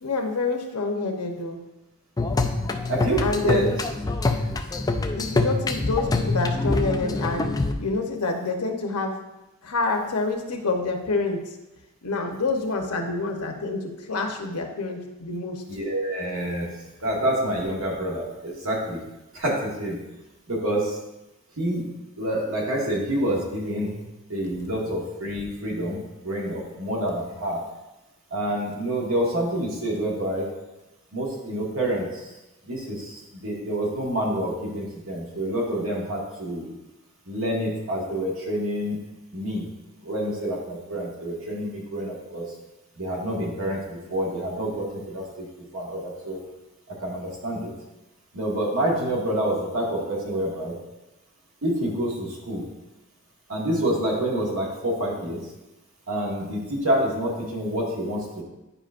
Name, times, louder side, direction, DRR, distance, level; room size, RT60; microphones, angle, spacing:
voice 1, 0.0-1.6 3.2-3.7 4.4-4.5 5.2-7.5 7.8-9.1 9.6-11.4 12.0-15.6, left 3 dB, 90° left, 3 dB, 0.9 m, -27 dB
sound 1, 2.2-7.7, left 3 dB, 15° left, 0.4 m, -25 dB
voice 2, 2.9-3.6 15.7-16.7 17.0-19.0 19.3-20.0 20.5-21.0 21.6-21.9 22.2-24.0 24.3-27.6 28.3-30.5 31.1-32.3 32.7-36.7 37.3-39.0 39.3-39.7 40.0-42.5 43.0-45.5 45.7-46.4 46.9-47.7 48.3-50.7 51.6-52.6 53.5-55.5 56.1-58.4, right 1 dB, 65° right, -3 dB, 1.7 m, -27 dB
9.9 x 5.1 x 2.5 m, 1.0 s
head